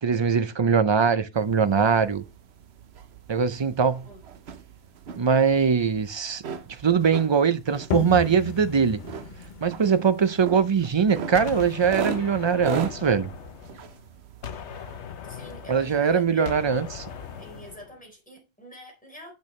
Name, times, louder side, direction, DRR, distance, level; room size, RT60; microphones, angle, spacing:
voice 1, 0.0-2.2 3.3-4.1 5.1-6.4 6.8-9.0 9.6-13.3 15.7-16.9, right 6 dB, 35° right, 0.5 m, -22 dB
sound 1, 1.3-17.8, right 6 dB, 75° right, 1.1 m, -39 dB
sound 2, 7.9-13.4, left 7 dB, 55° left, 0.6 m, -37 dB
Gunshot gunfire, 11.3-14.1 14.4-18.0, left 9 dB, 90° left, 1.1 m, -39 dB
voice 2, 15.2-16.5 17.4-19.3, equal, 5° left, 3.9 m, -45 dB
8.6 x 6.3 x 3.1 m
omnidirectional pair, 1.1 m